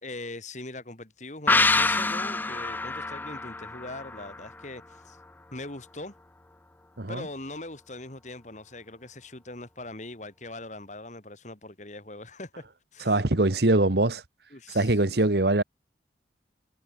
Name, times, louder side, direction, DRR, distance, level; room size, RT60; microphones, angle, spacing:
voice 1, 0.0-5.2 5.5-6.1 7.1-13.2 14.5-15.0, left 2 dB, 40° left, 2.7 m, -41 dB
sound 1, 1.5-4.9 5.2-5.3, left 3 dB, 10° left, 0.4 m, -26 dB
voice 2, 13.1-14.2 14.7-15.6, right 2 dB, 65° right, 1.5 m, -22 dB
head